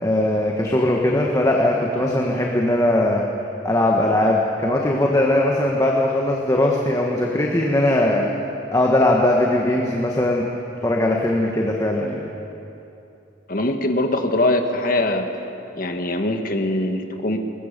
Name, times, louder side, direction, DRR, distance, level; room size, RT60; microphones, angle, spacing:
voice 1, 0.0-3.2 3.6-8.3 8.7-10.4 10.8-12.2, left 1 dB, 20° left, -1 dB, 1.5 m, -19 dB
voice 2, 13.5-15.3 15.7-17.4, left 1 dB, 50° left, 5 dB, 1.6 m, -22 dB
21.0 x 21.0 x 6.8 m, 2.9 s
head